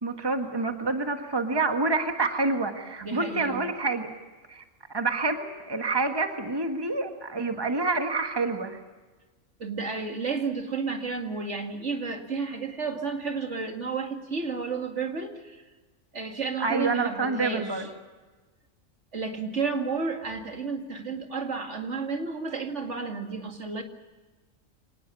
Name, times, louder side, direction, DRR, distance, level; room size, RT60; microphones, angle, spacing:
voice 1, 0.0-4.1 4.5-4.6 4.9-8.8 16.6-17.9, right 3 dB, 20° right, 5 dB, 1.6 m, -27 dB
voice 2, 3.0-3.7 9.6-15.6 16.1-17.9 19.1-23.8, right 4 dB, 65° right, 4 dB, 2.6 m, -32 dB
25.5 x 19.0 x 8.3 m, 1.3 s
omnidirectional pair, 1.3 m